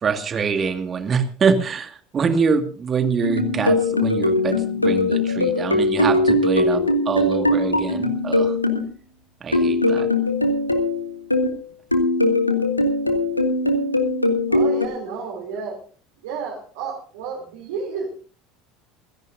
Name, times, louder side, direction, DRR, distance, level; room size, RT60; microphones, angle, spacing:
voice 1, 0.0-8.6 9.4-10.1, right 5 dB, 30° right, 7 dB, 2.1 m, -24 dB
sound 1, 3.2-8.8 9.5-11.6 11.9-14.9, left 2 dB, 90° left, 1.4 m, -20 dB
voice 2, 14.5-15.8 16.2-18.1, right 5 dB, 65° right, -2 dB, 3.2 m, -31 dB
27.5 x 10.5 x 2.7 m, 0.40 s
figure-of-eight pair, 70°, 0 cm